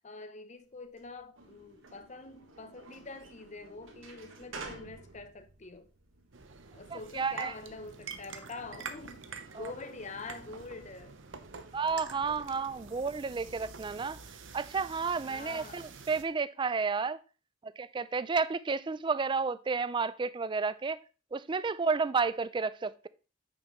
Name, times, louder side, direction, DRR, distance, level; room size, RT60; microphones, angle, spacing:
voice 1, 0.0-5.9 6.7-11.2 15.3-16.0, left 3 dB, 35° left, 0.7 m, -45 dB
sound 1, 0.7-11.5, right 3 dB, 85° right, 1.5 m, -53 dB
sound 2, 6.3-16.2, right 5 dB, 70° right, 0.9 m, -47 dB
voice 2, 6.9-7.5 9.5-9.7 11.7-14.2 14.5-17.2 17.6-21.0 21.3-23.1, right 4 dB, 25° right, 0.3 m, -31 dB
8.7 x 6.4 x 3.1 m
head